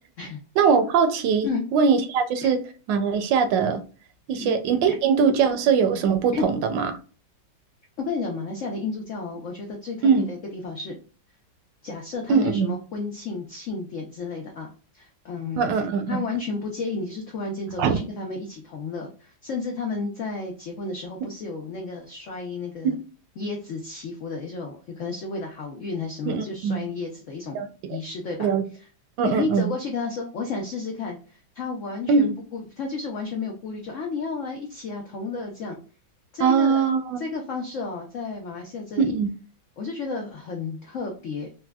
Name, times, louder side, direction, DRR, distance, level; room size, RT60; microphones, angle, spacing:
voice 1, 0.6-2.6 2.9-3.8 4.3-6.9 10.0-10.3 12.3-12.7 15.6-16.2 17.8-18.0 26.3-26.8 27.5-27.7 28.4-28.6 29.2-29.7 32.1-32.3 36.4-37.2 39.0-39.3, right 6 dB, 75° right, 1.2 m, -21 dB
voice 2, 8.0-11.0 11.8-15.6 16.1-23.0 23.4-28.5 28.8-28.9 29.2-35.8 36.3-36.9 37.2-39.1 39.8-41.5, left 4 dB, 80° left, 0.6 m, -32 dB
4.2 x 2.1 x 2.2 m
omnidirectional pair, 2.1 m